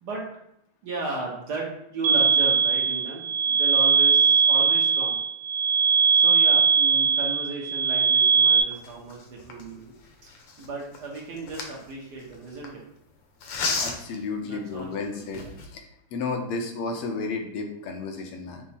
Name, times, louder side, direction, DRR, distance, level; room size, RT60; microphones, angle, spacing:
voice 1, 0.8-5.2 6.1-9.9 10.6-12.8 14.4-15.4, right 3 dB, 60° right, -3 dB, 1.2 m, -35 dB
sound 1, 2.0-8.6, right 6 dB, 85° right, 1.5 m, -20 dB
sound 2, 8.7-12.7 13.4-14.2 14.8-14.9 15.2-15.8, left 4 dB, 70° left, 1.3 m, -34 dB
voice 2, 13.8-15.4 15.7-18.6, left 4 dB, 90° left, 3 dB, 1.7 m, -32 dB
5.7 x 2.0 x 4.1 m, 0.76 s
omnidirectional pair, 2.4 m